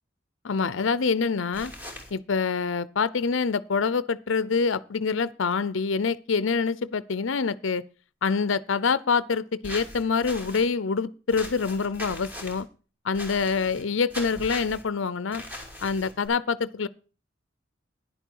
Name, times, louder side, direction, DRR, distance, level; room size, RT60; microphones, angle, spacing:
voice 1, 0.4-1.7 2.1-7.8 8.2-12.7 13.0-15.4 15.8-16.9, left 5 dB, 75° left, 0.6 m, -26 dB
sound 1, 1.5-2.1 9.6-10.7 11.3-12.6 13.1-13.8 14.1-14.8 15.3-16.3, left 1 dB, 10° right, 2.6 m, -39 dB
11.0 x 10.5 x 4.6 m
head